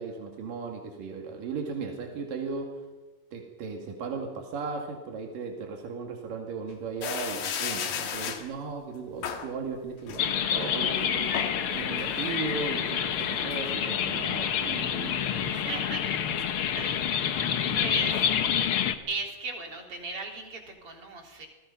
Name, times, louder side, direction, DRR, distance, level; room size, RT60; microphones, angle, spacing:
voice 1, 0.0-2.7 3.3-11.3 11.7-15.9 17.7-18.1, right 4 dB, 85° right, 2 dB, 3.9 m, -36 dB
sound 1, 7.0-8.5 9.2-9.5 10.1-10.7 11.1-11.6 12.0-13.7, left 8 dB, 85° left, 3.4 m, -35 dB
sound 2, 10.2-18.9, left 8 dB, 65° left, 1.4 m, -28 dB
voice 2, 15.3-16.0 16.8-17.4 17.7-18.3 19.1-21.5, right 3 dB, 45° right, 2 dB, 4.3 m, -37 dB
28.5 x 20.0 x 5.7 m, 1.1 s
omnidirectional pair, 3.8 m